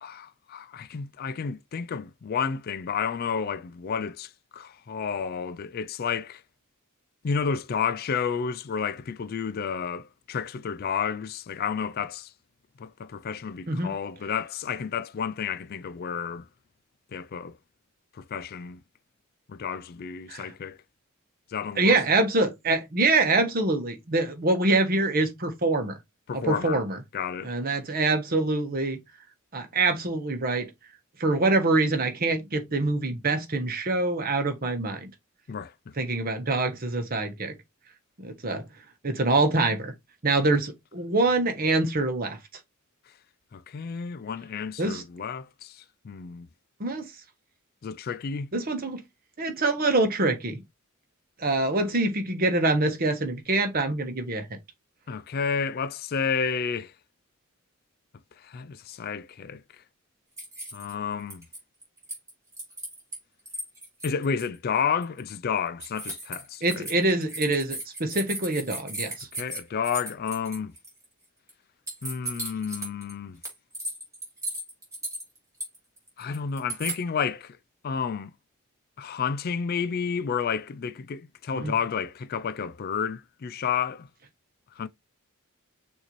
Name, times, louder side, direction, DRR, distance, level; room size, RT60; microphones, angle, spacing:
voice 1, 0.0-6.4 7.2-12.3 12.8-16.5 17.1-17.6 18.1-18.8 19.5-20.8 21.5-22.0 26.3-26.8 27.1-27.5 35.5-35.7 43.5-46.5 47.8-48.5 55.1-56.9 58.4-59.6 60.7-61.5 64.0-66.9 69.3-70.7 72.0-73.4 76.2-77.6 77.8-78.3 79.0-84.1 84.8-84.9, left 6 dB, 45° left, 0.4 m, -31 dB
voice 2, 21.8-26.0 26.3-27.0 27.4-29.0 29.5-30.7 31.2-35.1 36.0-37.5 38.2-38.6 39.0-39.9 40.2-42.4 44.8-45.0 46.8-47.0 48.5-49.0 49.4-50.6 51.4-54.6 66.6-69.3 81.5-81.7, right 2 dB, 45° right, 1.0 m, -25 dB
sound 1, 60.4-60.9 61.3-63.2 63.5-64.5 65.0-65.2 65.8-71.0 71.5-71.6 71.9-73.1 73.4-77.0, right 1 dB, 15° right, 2.8 m, -36 dB
6.5 x 2.7 x 3.0 m
head